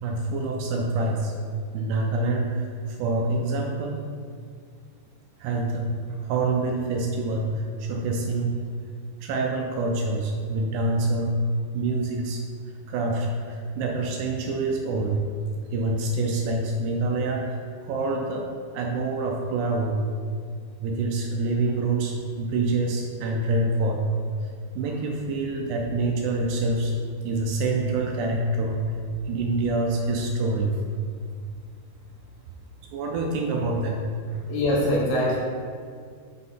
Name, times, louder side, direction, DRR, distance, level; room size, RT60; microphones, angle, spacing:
voice 1, 0.0-1.3 1.7-4.0 5.4-8.6 9.2-11.3 11.7-12.4 12.9-15.2 15.7-18.5 18.7-20.1 20.8-24.1 24.4-26.9 27.2-29.0 29.3-30.8 32.9-34.0 34.3-34.4, right 2 dB, 80° right, 1 dB, 2.5 m, -26 dB
voice 2, 34.5-35.4, left 1 dB, 80° left, -4 dB, 3.4 m, -23 dB
8.2 x 3.8 x 3.8 m, 2.1 s
omnidirectional pair, 5.1 m